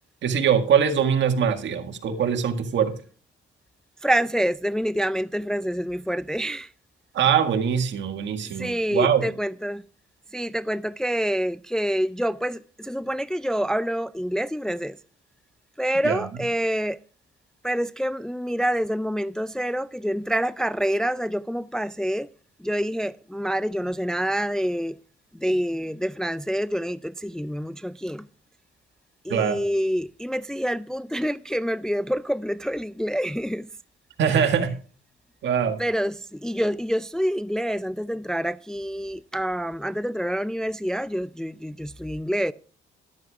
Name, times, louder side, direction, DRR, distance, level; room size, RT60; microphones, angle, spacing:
voice 1, 0.2-2.9 7.1-9.2 16.0-16.2 29.3-29.6 34.2-34.7 35.4-35.8, right 7 dB, 65° right, 1.8 m, -22 dB
voice 2, 4.0-6.7 8.4-9.8 10.3-15.0 15.8-17.0 17.6-22.3 22.6-25.0 25.3-28.3 29.2-33.7 34.2-34.6 35.8-42.5, equal, 5° left, 0.4 m, -27 dB
13.5 x 12.0 x 2.4 m
cardioid pair, 90°, 20 cm